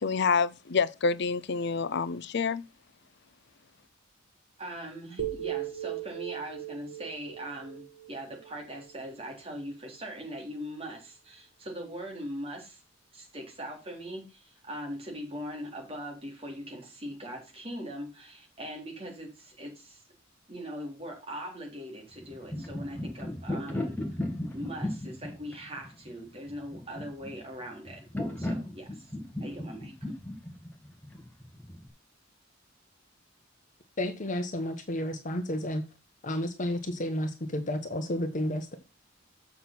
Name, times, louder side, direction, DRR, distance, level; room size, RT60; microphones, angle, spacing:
voice 1, 0.0-2.6, left 5 dB, 60° left, 0.6 m, -27 dB
voice 2, 4.6-12.8 13.1-20.0 20.5-24.0 24.5-28.1 28.4-29.1 29.4-29.9, equal, 30° right, 3.7 m, -41 dB
sound 1, 5.2-9.3, right 12 dB, 70° right, 1.5 m, -38 dB
sound 2, 22.2-31.9, left 1 dB, 10° left, 1.9 m, -36 dB
voice 3, 34.0-35.8 36.2-38.7, left 1 dB, 40° left, 1.1 m, -31 dB
7.7 x 5.9 x 5.9 m
head